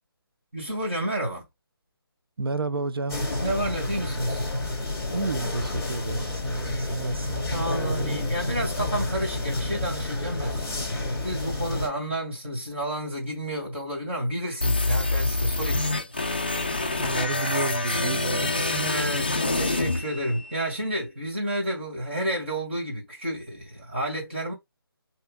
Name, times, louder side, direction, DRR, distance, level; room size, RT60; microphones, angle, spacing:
voice 1, 0.5-1.4 3.4-4.5 7.5-10.9 11.2-16.1 18.7-24.5, right 1 dB, 30° right, 2.3 m, -30 dB
voice 2, 2.4-3.2 5.1-8.2 17.0-18.8, right 3 dB, 70° right, 0.5 m, -31 dB
sound 1, 3.1-11.9, left 2 dB, ahead, 1.9 m, -30 dB
sound 2, 14.6-20.6, left 2 dB, 25° left, 0.4 m, -26 dB
5.7 x 2.8 x 2.3 m
hypercardioid pair, 180°, 13 cm